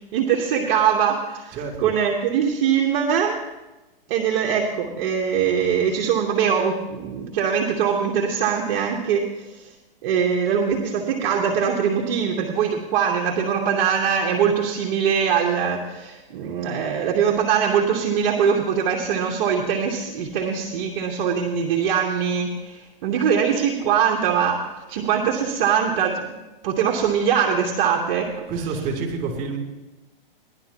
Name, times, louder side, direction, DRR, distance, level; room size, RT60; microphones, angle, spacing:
voice 1, 0.1-1.6 1.8-3.4 4.1-9.5 10.0-26.4 26.6-28.5, right 7 dB, 50° right, 1 dB, 1.4 m, -22 dB
voice 2, 1.5-1.9 28.5-29.6, right 4 dB, 30° right, 1 dB, 3.2 m, -28 dB
17.5 x 11.0 x 3.0 m, 1.1 s
hypercardioid pair, 130°, 29 cm